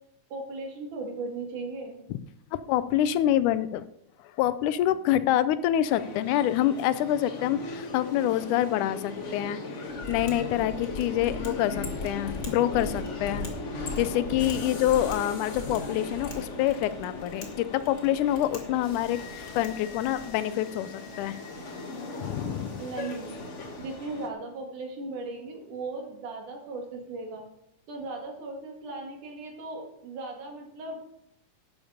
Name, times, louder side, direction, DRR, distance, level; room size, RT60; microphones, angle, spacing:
voice 1, 0.3-2.0 22.7-23.4 23.8-27.5 27.9-31.0, right 3 dB, 75° right, 1 dB, 3.7 m, -37 dB
voice 2, 2.5-3.9 4.2-13.5 14.0-21.4 22.2-22.8, left 12 dB, 85° left, 15 dB, 2.1 m, -26 dB
sound 1, 5.8-24.3, left 2 dB, 65° left, 0.7 m, -38 dB
Mechanisms, 9.9-20.4, left 2 dB, 35° left, 2.3 m, -41 dB
12.5 x 8.2 x 5.0 m, 0.77 s
omnidirectional pair, 3.5 m